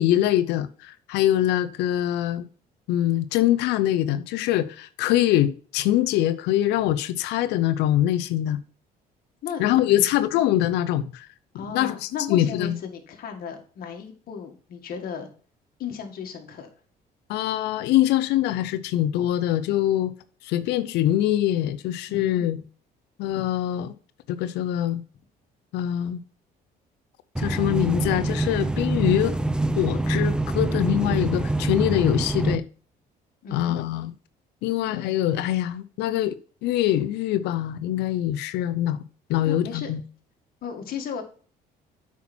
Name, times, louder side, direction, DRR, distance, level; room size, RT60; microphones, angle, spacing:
voice 1, 0.0-2.4 2.9-8.6 9.6-11.3 11.5-12.8 17.3-20.1 20.4-22.6 23.2-24.0 24.3-25.0 25.7-26.2 27.4-29.4 29.8-32.6 33.5-34.1 34.6-36.4 36.6-39.0 39.3-40.0, left 12 dB, 85° left, 0.6 m, -23 dB
voice 2, 11.5-15.3 15.8-16.7 22.1-22.4 33.4-33.8 39.4-39.9 40.6-41.2, left 7 dB, 60° left, 2.0 m, -35 dB
sound 1, 27.4-32.6, right 2 dB, 5° right, 0.5 m, -25 dB
8.4 x 5.9 x 4.3 m
cardioid pair, 110°, 17 cm